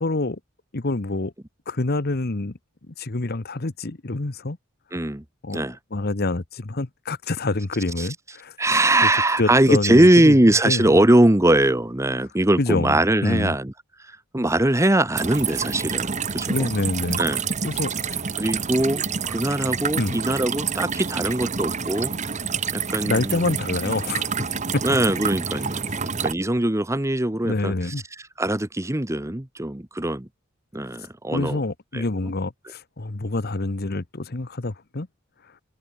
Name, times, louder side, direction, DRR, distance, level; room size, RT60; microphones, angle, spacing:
voice 1, 0.0-0.4 0.7-1.3 1.7-2.6 2.8-4.6 5.4-5.7 5.9-8.6 9.0-9.1 9.4-10.4 10.6-10.9 12.6-13.5 16.5-17.2 17.6-18.2 20.0-20.2 23.1-24.8 27.4-28.0 31.3-35.1, left 2 dB, 50° left, 1.1 m, -26 dB
voice 2, 4.9-5.2 5.5-5.8 8.0-8.1 8.6-13.7 14.1-16.7 17.2-17.4 18.4-22.1 22.7-23.6 23.8-23.9 24.8-25.9 26.2-27.7 28.4-30.3 30.7-31.6 31.9-32.0, right 1 dB, 15° right, 1.1 m, -21 dB
sound 1, 15.2-26.3, right 6 dB, 35° right, 1.3 m, -28 dB
head